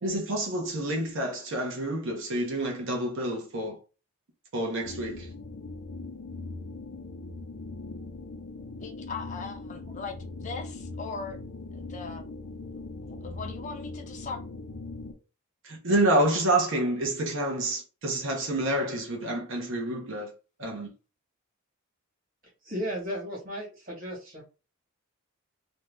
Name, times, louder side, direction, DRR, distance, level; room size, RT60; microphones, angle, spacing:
voice 1, 0.0-3.8 4.5-5.3 15.6-20.3 20.6-20.9, right 1 dB, 55° right, 0.7 m, -28 dB
sound 1, 4.8-15.1, left 3 dB, 75° left, 0.6 m, -40 dB
voice 2, 8.8-11.4 11.7-12.2 13.0-14.4, left 4 dB, 35° left, 0.5 m, -39 dB
voice 3, 22.6-24.4, equal, 40° right, 1.3 m, -35 dB
2.6 x 2.2 x 3.2 m
head